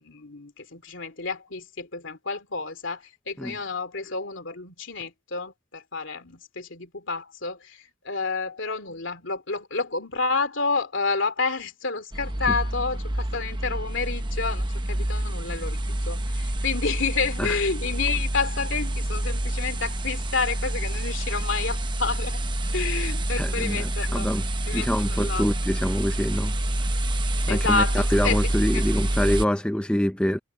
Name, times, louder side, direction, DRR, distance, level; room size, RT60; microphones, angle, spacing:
voice 1, 0.0-22.4 22.7-24.3 24.7-25.4 27.5-28.4 28.7-28.8, left 4 dB, 60° left, 3.1 m, -29 dB
sound 1, 12.1-29.4, right 1 dB, 20° right, 0.9 m, -27 dB
voice 2, 23.4-24.4 24.7-26.5 27.5-30.4, equal, 5° left, 0.5 m, -25 dB
head